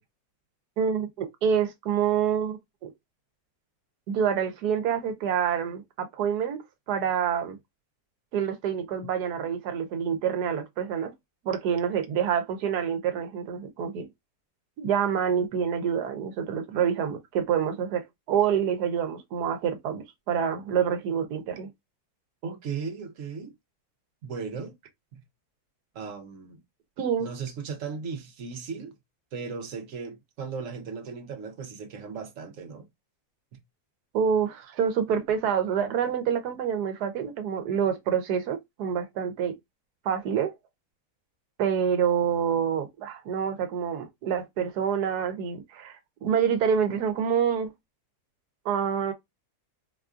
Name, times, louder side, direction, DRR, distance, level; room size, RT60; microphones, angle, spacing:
voice 1, 0.8-2.9 4.1-6.6 6.9-7.6 8.3-11.1 11.4-14.0 14.8-18.0 18.3-21.7 27.0-27.3 34.1-39.5 40.0-40.5 41.6-47.7 48.6-49.1, right 8 dB, 90° right, 1.3 m, -27 dB
voice 2, 22.4-23.5 24.2-24.7 25.1-25.2 25.9-26.6 27.2-28.9 29.3-32.9, right 5 dB, 60° right, 1.0 m, -36 dB
4.2 x 2.4 x 2.3 m
omnidirectional pair, 1.7 m